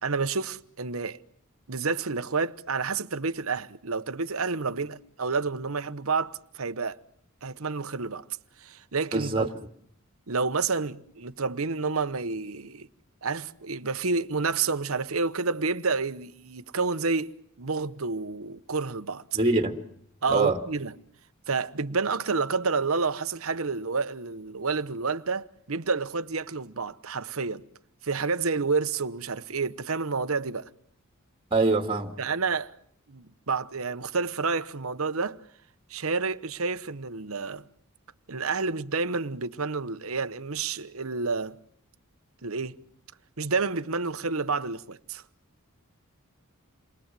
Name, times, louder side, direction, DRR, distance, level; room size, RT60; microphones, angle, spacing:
voice 1, 0.0-1.2 1.7-7.0 7.4-8.3 8.6-9.5 10.3-12.9 13.2-19.2 20.2-20.9 21.5-27.6 28.0-30.7 32.2-32.8 33.1-35.4 35.9-37.6 38.3-41.6 42.4-42.8 43.4-45.2, right 4 dB, 75° right, 1.1 m, -29 dB
voice 2, 9.1-9.5 19.3-19.7 20.3-20.6 31.5-32.1, right 3 dB, 25° right, 2.4 m, -24 dB
29.0 x 23.0 x 7.6 m
head